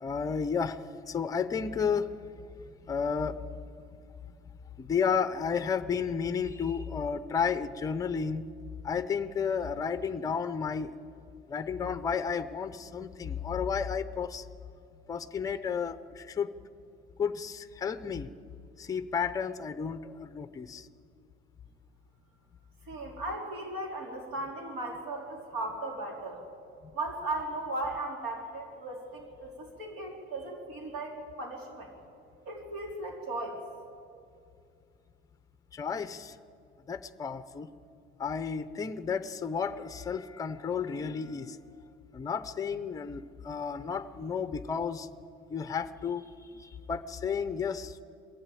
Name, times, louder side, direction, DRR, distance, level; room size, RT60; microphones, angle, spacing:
voice 1, 0.0-0.8 1.1-2.1 2.9-3.4 4.8-8.5 8.8-10.9 11.5-14.4 15.1-16.5 17.2-18.3 18.8-20.9 35.7-36.3 36.9-37.7 38.2-41.6 42.1-45.1 45.5-46.3 46.5-48.0, left 6 dB, 15° left, 11 dB, 0.6 m, -32 dB
voice 2, 22.9-26.4 26.9-31.9 32.5-33.6, right 2 dB, 80° right, 0 dB, 4.2 m, -37 dB
22.0 x 15.5 x 9.1 m, 2.5 s
cardioid pair, 180°, 21 cm